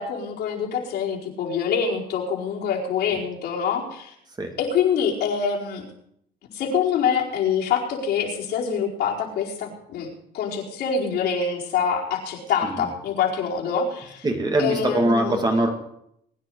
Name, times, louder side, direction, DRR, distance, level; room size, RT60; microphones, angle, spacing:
voice 1, 0.0-4.1 4.6-5.8 6.5-14.3 14.6-15.4, left 6 dB, 75° left, -4 dB, 4.6 m, -25 dB
voice 2, 14.2-15.7, right 1 dB, 25° right, 4 dB, 2.4 m, -22 dB
22.0 x 10.0 x 4.9 m, 0.73 s
cardioid pair, 110°, 17 cm